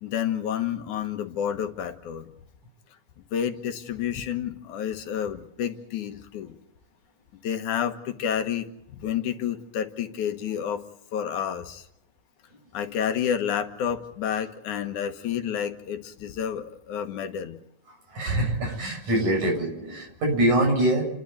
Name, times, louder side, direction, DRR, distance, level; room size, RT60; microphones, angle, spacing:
voice 1, 0.0-2.3 3.3-6.6 7.4-10.8 11.1-11.9 12.7-17.6, left 9 dB, 85° left, 7 dB, 2.9 m, -30 dB
voice 2, 18.1-21.0, right 1 dB, 75° right, 1 dB, 8.6 m, -24 dB
29.5 x 11.5 x 9.4 m, 0.81 s
omnidirectional pair, 3.4 m